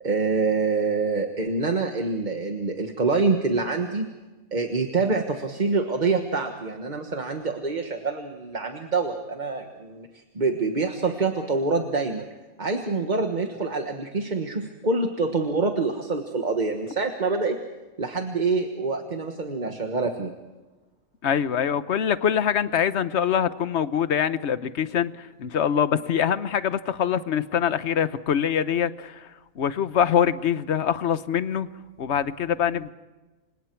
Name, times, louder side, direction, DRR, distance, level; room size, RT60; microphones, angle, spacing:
voice 1, 0.0-4.1 4.5-12.2 12.6-17.6 18.0-20.3, right 3 dB, 30° right, 5 dB, 1.4 m, -26 dB
voice 2, 21.2-29.3 29.6-31.7 32.0-32.9, left 8 dB, 55° left, 13 dB, 1.1 m, -24 dB
30.0 x 26.0 x 4.6 m, 1.2 s
omnidirectional pair, 1.5 m